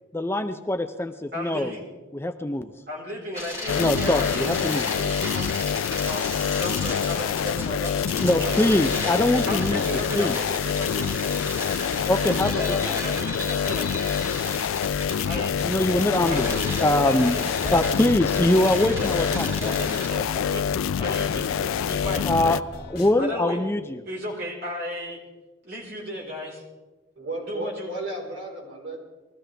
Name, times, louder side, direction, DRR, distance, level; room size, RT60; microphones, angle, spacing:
voice 1, 0.1-1.7 2.1-2.7 3.8-4.8 8.2-10.4 12.1-13.0 15.6-16.5 16.8-17.4 17.7-19.8 22.3-22.6 22.9-24.0, left 1 dB, 10° left, 7 dB, 0.4 m, -23 dB
voice 2, 1.3-1.8 2.9-5.6 6.1-8.8 9.5-11.2 12.1-14.0 15.2-15.5 16.3-17.8 18.6-20.6 21.0-22.3 23.2-23.6 24.0-25.2 25.6-26.6 27.4-27.9, equal, 50° right, -2 dB, 4.2 m, -34 dB
sound 1, 3.3-20.1, left 1 dB, 15° right, 3.0 m, -35 dB
sound 2, 3.7-22.6, left 8 dB, 85° left, 0.3 m, -26 dB
sound 3, 14.8-23.1, left 1 dB, 50° left, 1.9 m, -41 dB
voice 3, 27.2-29.0, right 2 dB, 80° right, -2 dB, 4.0 m, -34 dB
21.0 x 14.5 x 3.4 m, 1.2 s
head